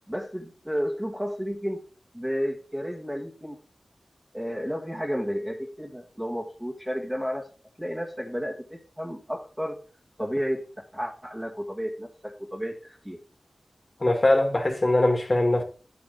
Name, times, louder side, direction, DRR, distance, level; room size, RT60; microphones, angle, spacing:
voice 1, 0.1-1.8 2.1-3.6 4.3-7.5 7.8-9.8 10.2-10.7 10.9-13.2, equal, 10° right, 1.7 m, -32 dB
voice 2, 14.0-15.6, left 1 dB, 35° left, 1.6 m, -21 dB
10.5 x 5.0 x 3.8 m
wide cardioid pair, 95°, 0 cm